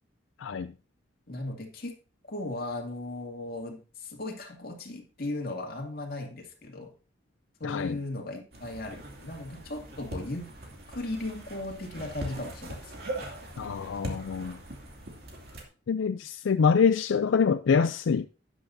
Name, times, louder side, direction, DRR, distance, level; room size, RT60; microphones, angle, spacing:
voice 1, 0.4-0.7 7.6-8.0 13.6-14.6 15.9-18.2, left 6 dB, 85° left, 0.4 m, -25 dB
voice 2, 1.3-2.0 2.3-6.9 7.6-10.5 10.9-12.9, left 2 dB, 50° left, 2.5 m, -37 dB
sound 1, 8.5-15.6, right 1 dB, 55° right, 2.6 m, -41 dB
12.0 x 10.0 x 2.7 m
head